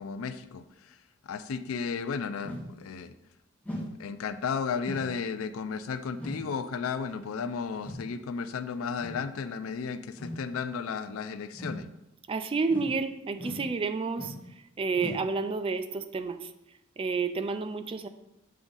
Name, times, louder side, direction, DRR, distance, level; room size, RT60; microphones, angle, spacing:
voice 1, 0.0-3.2 4.0-11.9, left 5 dB, 75° left, 12 dB, 0.4 m, -34 dB
sound 1, 2.4-2.7 3.6-3.9 4.8-5.1 6.2-6.5 7.8-8.0 9.0-9.3 10.2-10.4 11.5-11.9 12.7-13.0 13.4-13.7 14.2-14.5 14.9-15.3, left 1 dB, 5° left, 1.1 m, -38 dB
voice 2, 12.3-14.3 14.8-16.5 17.0-18.1, right 4 dB, 25° right, 10 dB, 0.3 m, -30 dB
7.6 x 3.5 x 3.9 m, 0.90 s
head